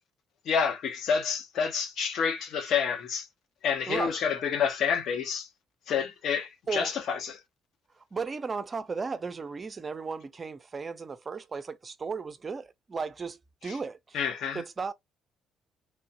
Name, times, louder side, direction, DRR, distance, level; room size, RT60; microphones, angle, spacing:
voice 1, 0.5-3.3 3.6-5.5 5.9-7.4 13.7-13.8 14.1-14.6, left 6 dB, 65° left, 0.9 m, -28 dB
voice 2, 3.9-4.2 6.7-6.9 8.1-14.2 14.5-14.9, right 5 dB, 40° right, 0.5 m, -35 dB
3.2 x 2.0 x 2.8 m
hypercardioid pair, 55°, 0 cm